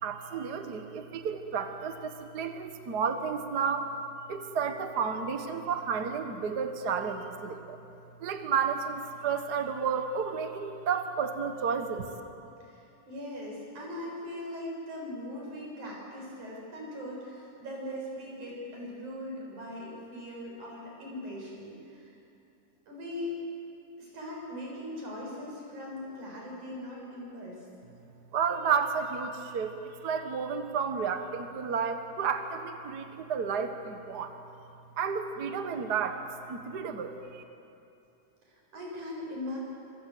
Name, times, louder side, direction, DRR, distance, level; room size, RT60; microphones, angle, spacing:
voice 1, 0.0-3.9 4.3-7.8 8.2-12.1 28.3-34.3 35.0-36.2 36.5-37.4, right 6 dB, 45° right, 6 dB, 1.4 m, -31 dB
voice 2, 12.6-22.1 22.9-23.4 24.0-27.7 38.5-39.6, left 1 dB, 75° right, -2 dB, 8.5 m, -40 dB
26.5 x 25.5 x 7.9 m, 2.7 s
omnidirectional pair, 3.5 m